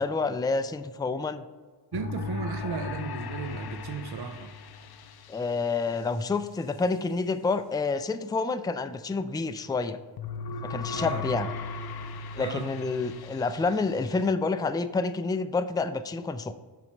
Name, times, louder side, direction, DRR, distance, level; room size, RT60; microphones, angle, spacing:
voice 1, 0.0-1.4 5.3-10.0 10.6-11.5 12.4-16.5, left 4 dB, 10° left, 10 dB, 0.4 m, -28 dB
sound 1, 1.9-5.6 10.2-14.3, left 4 dB, 60° left, 0.6 m, -37 dB
voice 2, 1.9-4.5 10.6-11.3 12.4-12.7, right 6 dB, 60° right, 8 dB, 0.6 m, -36 dB
5.8 x 5.3 x 4.5 m, 1.5 s
cardioid pair, 45°, 44 cm